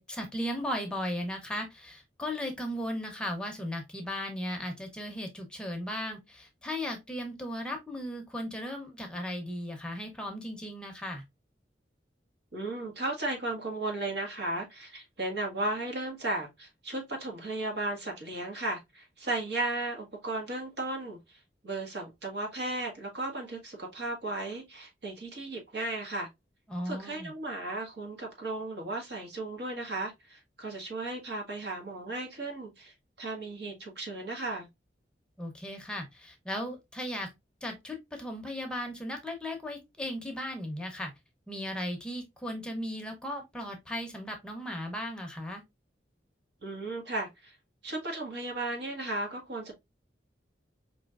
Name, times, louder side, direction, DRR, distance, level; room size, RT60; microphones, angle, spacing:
voice 1, 0.0-11.2 26.7-27.3 35.4-37.3 37.6-41.1 41.5-45.6, equal, 5° left, 0.7 m, -36 dB
voice 2, 12.5-26.3 26.8-34.7 46.6-47.6 47.8-49.7, right 2 dB, 70° right, 1.3 m, -35 dB
4.9 x 2.8 x 2.4 m
head